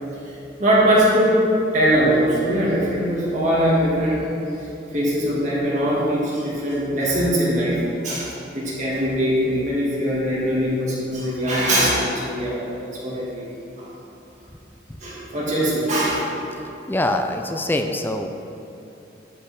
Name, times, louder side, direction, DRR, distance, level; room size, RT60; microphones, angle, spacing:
voice 1, 0.6-1.4 1.7-4.2 4.9-7.8 8.0-13.4 13.8-13.9 15.0-16.2, equal, 40° right, -7 dB, 1.9 m, -21 dB
voice 2, 16.9-18.3, left 1 dB, 10° left, 5 dB, 0.4 m, -23 dB
12.5 x 5.4 x 4.2 m, 2.9 s
head